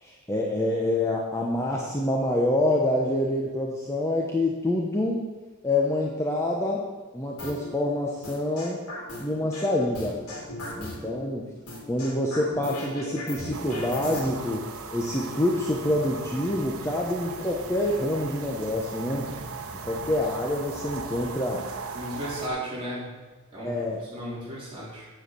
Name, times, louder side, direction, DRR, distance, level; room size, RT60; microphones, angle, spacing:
voice 1, 0.0-5.3 5.6-6.8 7.1-8.8 9.2-10.2 10.8-11.5 11.9-19.4 19.8-21.7 23.6-24.0, left 1 dB, 15° left, -2 dB, 0.9 m, -26 dB
sound 1, 7.4-7.7 8.2-9.7 9.9-11.2 11.7-14.2, left 1 dB, 85° left, 2.9 m, -37 dB
sound 2, 13.5-22.5, right 4 dB, 75° right, 1.0 m, -38 dB
voice 2, 21.9-23.1 23.5-23.8 24.1-25.1, equal, 25° right, -7 dB, 3.8 m, -34 dB
7.9 x 7.9 x 6.8 m, 1.2 s
head